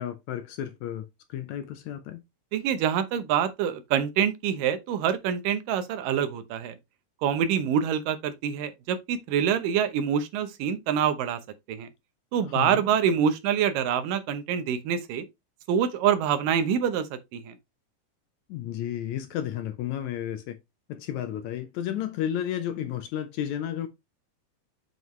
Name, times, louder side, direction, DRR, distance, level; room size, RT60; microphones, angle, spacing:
voice 1, 0.0-2.2 12.5-12.8 18.5-20.6 20.9-23.9, left 10 dB, 75° left, 1.8 m, -32 dB
voice 2, 2.5-6.7 7.2-11.4 11.7-11.9 12.3-15.2 15.7-17.1 17.3-17.5, right 8 dB, 85° right, 2.6 m, -26 dB
7.6 x 5.4 x 3.1 m
omnidirectional pair, 3.8 m